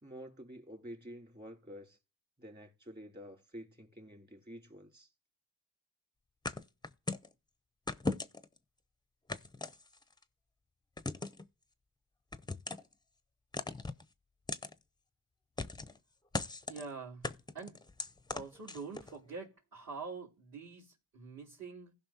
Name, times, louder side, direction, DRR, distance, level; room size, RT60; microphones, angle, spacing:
voice 1, 0.0-2.0 2.4-5.1, equal, 25° right, 2.9 m, -49 dB
Thumps and bumps of plastic, 6.5-7.3 7.9-8.6 9.3-10.2 11.0-11.4 12.3-12.9 13.5-14.0 14.5-14.7 15.6-16.0 16.3-16.9 17.2-19.1, left 3 dB, 10° left, 0.6 m, -38 dB
voice 2, 16.7-17.8 18.3-21.9, right 4 dB, 50° right, 3.0 m, -46 dB
16.0 x 5.5 x 2.8 m
cardioid pair, 55°, 42 cm